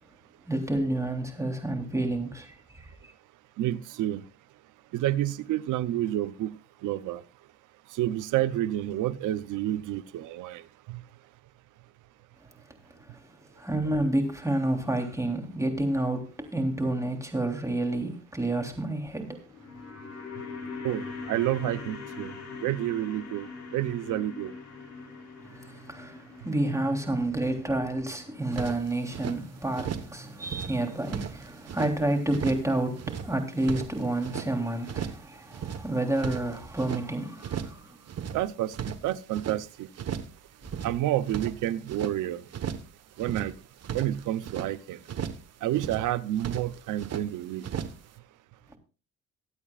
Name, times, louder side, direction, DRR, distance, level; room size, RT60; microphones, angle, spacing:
voice 1, 0.5-2.9 13.0-13.2 13.6-19.5 25.5-38.0, right 1 dB, 10° right, 3.3 m, -29 dB
voice 2, 3.6-4.2 4.9-6.5 6.8-7.2 8.0-10.6 10.9-11.0 20.8-22.3 22.6-23.5 23.7-24.5 38.3-39.9 40.8-42.4 43.2-43.5 43.9-45.0 45.6-47.6, right 13 dB, 90° right, 0.8 m, -29 dB
sound 1, 19.4-29.6 29.9-30.0, left 4 dB, 65° left, 6.3 m, -43 dB
sound 2, 28.5-29.4 29.7-30.2 30.4-31.9 32.3-32.7 33.0-34.5 34.9-35.3 35.5-37.0 37.4-37.8 38.1-39.6 40.0-40.4 40.6-42.2 42.5-42.9 43.2-44.7 45.1-45.5 45.7-46.1 46.4-47.3 47.6-48.0, right 8 dB, 55° right, 1.3 m, -36 dB
24.0 x 8.4 x 2.4 m
cardioid pair, 90°, 30 cm